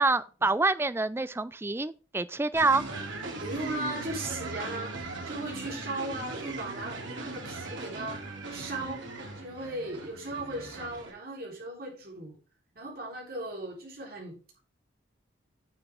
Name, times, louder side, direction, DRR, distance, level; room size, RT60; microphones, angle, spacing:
voice 1, 0.0-2.8, right 3 dB, 10° right, 0.4 m, -26 dB
sound 1, 2.5-11.1, right 2 dB, 85° right, 3.1 m, -39 dB
voice 2, 3.4-4.9 5.3-8.2 8.5-9.1 9.4-12.4 12.8-14.4, right 2 dB, 50° right, 3.9 m, -37 dB
9.7 x 6.9 x 3.7 m
head